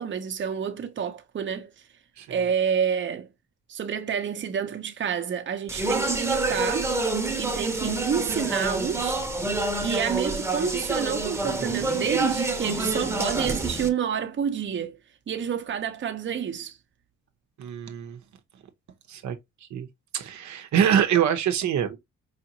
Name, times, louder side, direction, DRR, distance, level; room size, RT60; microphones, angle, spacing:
voice 1, 0.0-1.7 2.3-3.3 3.7-6.9 7.4-9.2 9.8-15.0 15.3-16.7, right 7 dB, 40° right, 0.8 m, -28 dB
voice 2, 2.2-2.5 17.6-18.2 19.1-19.4 19.7-19.9 20.1-22.0, right 9 dB, 70° right, 0.8 m, -24 dB
Speech, 5.7-13.9, right 2 dB, 10° right, 1.0 m, -27 dB
4.9 x 2.6 x 2.8 m
cardioid pair, 90°, 30 cm